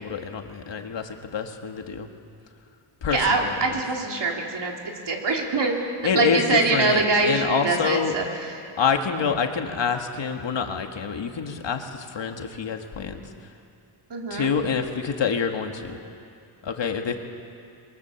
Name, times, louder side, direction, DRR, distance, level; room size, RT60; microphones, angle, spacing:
voice 1, 0.0-2.1 3.0-3.5 6.0-8.2 8.8-13.2 14.3-16.0 16.6-17.2, left 6 dB, 60° left, 4 dB, 1.8 m, -27 dB
voice 2, 3.1-4.7 5.1-5.7 6.1-8.6 14.1-14.5, right 3 dB, 60° right, 0 dB, 3.2 m, -24 dB
28.0 x 22.5 x 7.1 m, 2.5 s
wide cardioid pair, 170°, 48 cm